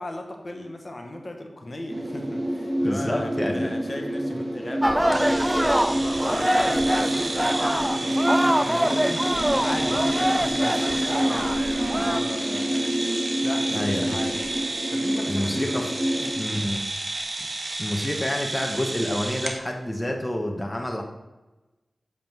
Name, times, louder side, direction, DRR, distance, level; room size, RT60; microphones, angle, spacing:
voice 1, 0.0-13.0 13.4-14.4 14.9-15.6 16.2-16.5, left 1 dB, 45° left, 3 dB, 1.1 m, -36 dB
sound 1, 1.9-16.3, equal, 35° right, 1.5 m, -28 dB
voice 2, 2.8-3.7 13.7-14.2 15.3-15.9 16.4-16.8 17.8-21.0, left 1 dB, 20° left, 1 dB, 1.0 m, -28 dB
sound 2, 4.8-12.2, equal, 10° right, 0.4 m, -25 dB
sound 3, 5.1-19.6, right 2 dB, 50° right, 1.0 m, -32 dB
7.5 x 3.7 x 6.0 m, 1.1 s
cardioid pair, 45°, 0 cm